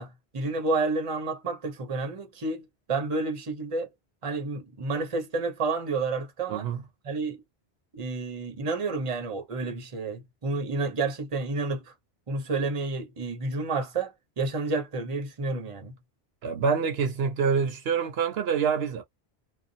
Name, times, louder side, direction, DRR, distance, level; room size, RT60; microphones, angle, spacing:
voice 1, 0.0-3.9 4.2-6.7 7.0-7.4 7.9-11.9 12.3-15.9, right 3 dB, 35° right, 0.8 m, -30 dB
voice 2, 6.5-6.8 16.4-19.0, right 6 dB, 75° right, 0.9 m, -26 dB
2.5 x 2.2 x 2.6 m
omnidirectional pair, 1.1 m